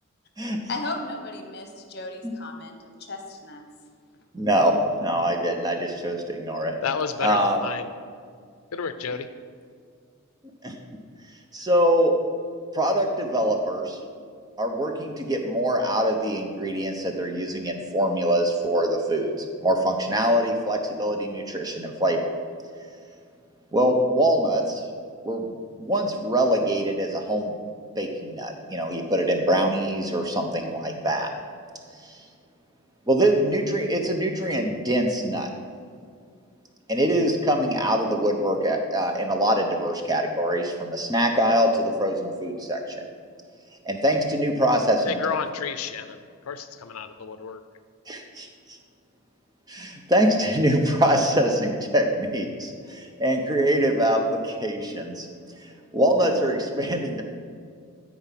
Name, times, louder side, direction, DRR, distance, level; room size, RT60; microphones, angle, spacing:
voice 1, 0.7-3.6, left 2 dB, 50° left, 4 dB, 1.1 m, -35 dB
voice 2, 4.3-6.7 7.2-7.6 10.6-10.7 11.5-12.1 12.7-14.0 14.6-19.3 19.6-22.2 23.7-24.8 25.2-27.5 28.0-31.3 32.0-32.2 33.1-35.5 36.9-43.0 43.8-45.2 48.1-48.5 49.7-55.3 55.9-57.2, equal, 20° right, 3 dB, 0.8 m, -24 dB
voice 3, 6.8-7.9 8.7-9.3 45.1-46.2 46.5-47.6, left 6 dB, 90° left, 10 dB, 0.5 m, -30 dB
12.5 x 4.8 x 5.8 m, 2.2 s
head